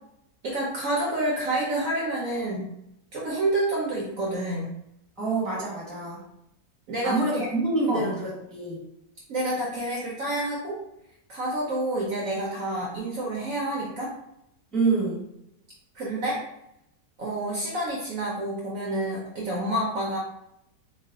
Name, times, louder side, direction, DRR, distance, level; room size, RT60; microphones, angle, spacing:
voice 1, 0.4-2.7 3.1-4.7 6.9-7.5 7.9-8.1 9.3-10.8 11.3-14.1 15.9-16.4 17.2-20.2, right 1 dB, 60° right, -3 dB, 0.9 m, -28 dB
voice 2, 5.2-6.2 7.0-8.8 14.7-15.2, right 3 dB, ahead, -6 dB, 0.8 m, -26 dB
3.1 x 2.1 x 3.5 m, 0.79 s
omnidirectional pair, 1.8 m